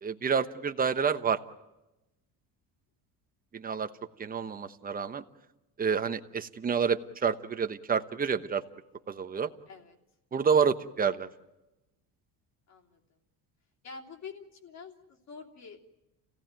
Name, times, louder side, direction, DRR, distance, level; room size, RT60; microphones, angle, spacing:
voice 1, 0.0-1.4 3.5-3.9 4.2-5.2 5.8-8.6 9.1-9.5 10.3-11.3, right 6 dB, 20° right, 9 dB, 1.1 m, -28 dB
voice 2, 3.8-4.2 9.7-10.0 12.7-13.0 13.8-15.8, left 5 dB, 45° left, 2 dB, 3.1 m, -47 dB
29.0 x 17.0 x 9.1 m, 1.0 s
cardioid pair, 135°, 38 cm